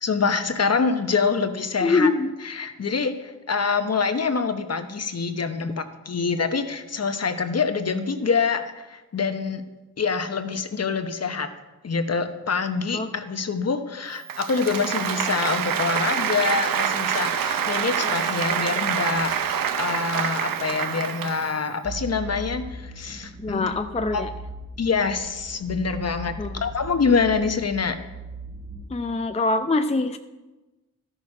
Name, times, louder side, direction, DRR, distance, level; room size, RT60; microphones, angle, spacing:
voice 1, 0.0-2.1 2.4-9.6 10.0-11.5 11.8-23.7 24.1-24.2 24.8-26.3 26.6-28.0, left 5 dB, 50° left, 8 dB, 1.0 m, -25 dB
voice 2, 1.8-2.3 12.9-13.1 23.4-24.3 26.4-26.6 28.9-30.2, left 3 dB, 20° left, 7 dB, 0.6 m, -24 dB
Applause, 14.2-21.6, right 8 dB, 85° right, 0.6 m, -26 dB
sound 1, 21.8-28.9, right 2 dB, 15° right, 1.1 m, -38 dB
12.5 x 6.4 x 4.9 m, 1.1 s
cardioid pair, 45°, 33 cm